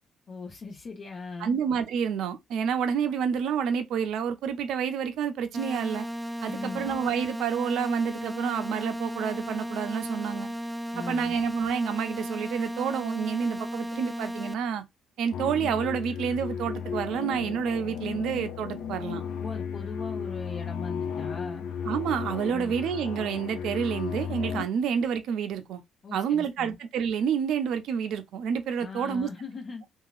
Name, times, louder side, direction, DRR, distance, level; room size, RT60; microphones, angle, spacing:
voice 1, 0.3-1.6 6.5-6.9 10.9-11.3 19.4-21.7 22.5-22.7 26.0-26.7 28.8-29.8, left 4 dB, 50° left, 0.9 m, -39 dB
voice 2, 1.4-6.1 6.4-10.5 11.0-14.8 15.2-19.2 21.8-25.8 26.1-29.3, right 7 dB, 65° right, 0.4 m, -29 dB
sound 1, 5.5-14.5, equal, 5° right, 0.5 m, -35 dB
sound 2, 15.3-24.6, left 7 dB, 65° left, 0.4 m, -34 dB
2.9 x 2.2 x 2.4 m
hypercardioid pair, 45°, 0 cm